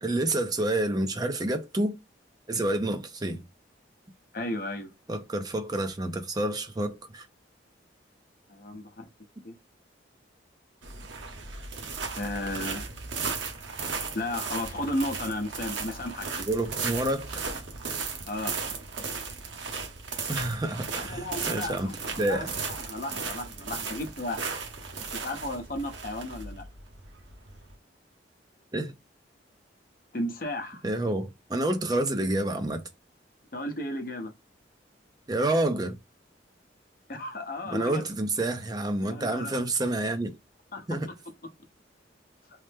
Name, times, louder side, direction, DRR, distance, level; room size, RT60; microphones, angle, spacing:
voice 1, 0.0-2.0 2.5-3.4 5.1-7.3 16.5-17.4 20.3-21.9 22.2-22.5 28.7-28.9 30.8-32.8 35.3-36.0 37.7-40.3 40.9-41.1, right 1 dB, 20° right, 0.5 m, -28 dB
voice 2, 4.3-4.9 8.5-9.1 9.4-9.6 12.2-12.9 14.1-16.5 18.3-18.5 21.0-24.4 25.2-26.6 30.1-30.8 33.5-34.3 37.1-38.0 39.0-39.6 40.7-41.0, left 1 dB, 50° left, 0.7 m, -34 dB
sound 1, 10.8-27.7, right 4 dB, 80° right, 0.8 m, -36 dB
3.2 x 2.0 x 3.3 m
head